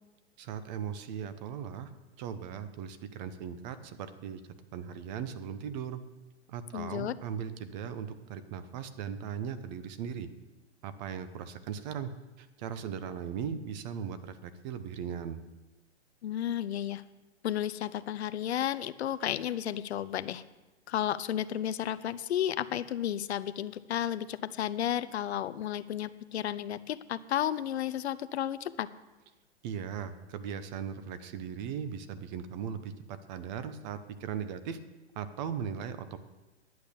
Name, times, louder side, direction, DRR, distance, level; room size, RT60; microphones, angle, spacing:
voice 1, 0.4-1.9 2.2-4.4 4.7-6.0 6.5-10.3 10.8-12.1 12.4-15.4 29.6-34.8 35.1-36.2, right 8 dB, 40° right, 11 dB, 1.1 m, -38 dB
voice 2, 6.7-7.2 16.2-17.0 17.4-20.4 20.9-28.9, left 11 dB, 70° left, 15 dB, 0.7 m, -32 dB
11.0 x 8.7 x 7.0 m, 1.1 s
hypercardioid pair, 130°, 34 cm